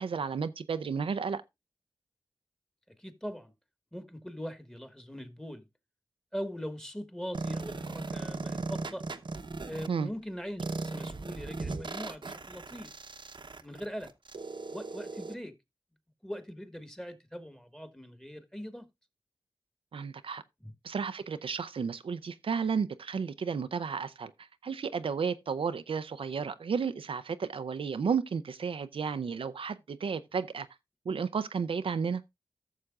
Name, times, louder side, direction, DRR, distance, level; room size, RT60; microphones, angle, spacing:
voice 1, 0.0-1.4 9.9-10.1 19.9-20.4 20.8-30.7 31.1-32.2, right 6 dB, 75° right, 0.5 m, -33 dB
voice 2, 2.9-3.5 3.9-5.7 6.3-9.1 9.6-12.9 13.6-14.1 14.7-15.5 16.2-18.9 20.6-20.7, equal, 5° left, 1.5 m, -41 dB
sound 1, 7.3-9.9 10.6-15.3, right 3 dB, 60° right, 0.8 m, -37 dB
14.5 x 6.5 x 2.4 m
cardioid pair, 45°, 9 cm